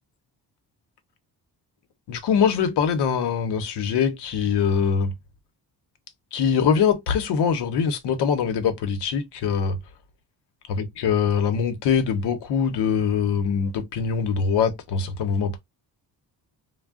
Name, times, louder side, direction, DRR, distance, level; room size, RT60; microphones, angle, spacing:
voice 1, 2.1-5.1 6.3-9.8 10.7-15.6, left 6 dB, 85° left, 0.8 m, -23 dB
2.3 x 2.1 x 3.5 m
cardioid pair, 120°, 39 cm